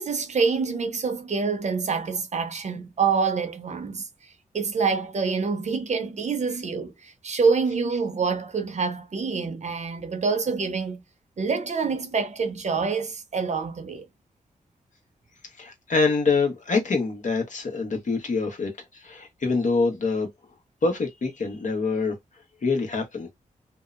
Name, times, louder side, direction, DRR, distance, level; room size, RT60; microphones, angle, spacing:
voice 1, 0.0-11.0 11.4-14.1, right 5 dB, 55° right, 0.7 m, -26 dB
voice 2, 15.6-20.3 20.8-22.1 22.6-23.3, left 4 dB, 60° left, 1.0 m, -25 dB
2.7 x 2.0 x 2.4 m
cardioid pair, 65°, 14 cm